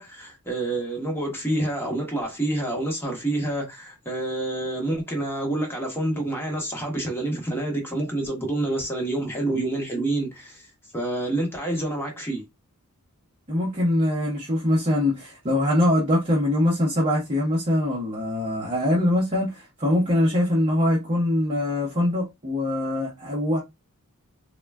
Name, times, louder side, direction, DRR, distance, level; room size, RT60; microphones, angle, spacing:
voice 1, 0.0-10.7 10.9-12.4, right 2 dB, 10° left, 1.0 m, -28 dB
voice 2, 13.5-23.6, left 1 dB, 30° right, 0.8 m, -23 dB
3.7 x 2.2 x 2.3 m
head